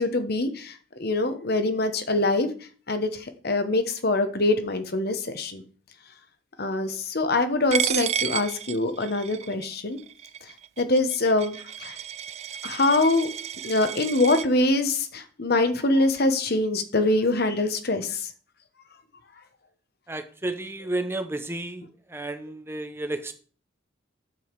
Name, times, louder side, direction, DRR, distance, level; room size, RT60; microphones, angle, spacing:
voice 1, 0.0-2.5 2.9-5.6 6.6-10.0 10.8-12.0 12.6-13.3 13.6-18.3, left 2 dB, 50° left, 9 dB, 1.1 m, -24 dB
Coin (dropping), 7.7-14.5, right 9 dB, 30° right, 0.3 m, -32 dB
voice 2, 20.1-21.8 22.1-23.3, right 2 dB, 10° right, 8 dB, 0.7 m, -32 dB
8.5 x 7.1 x 4.6 m, 0.41 s
head